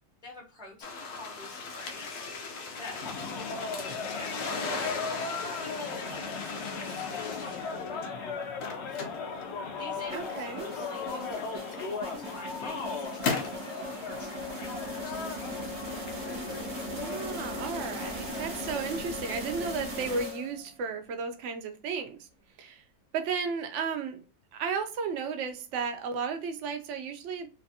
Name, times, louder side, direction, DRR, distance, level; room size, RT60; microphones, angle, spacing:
voice 1, 0.2-4.8 5.3-9.5 9.8-15.3, left 2 dB, 5° right, 0.4 m, -48 dB
sound 1, 0.8-8.1 8.4-10.4 11.4-11.5 12.2-13.7, left 4 dB, 80° left, 1.1 m, -37 dB
sound 2, 2.7-19.0, left 5 dB, 60° left, 0.7 m, -38 dB
sound 3, 10.1-20.8, left 1 dB, 40° right, 1.2 m, -38 dB
voice 2, 10.1-10.7 16.9-22.3 22.6-22.8 23.1-24.2 24.5-27.5, right 5 dB, 65° right, 0.8 m, -34 dB
3.2 x 2.5 x 2.6 m
omnidirectional pair, 1.6 m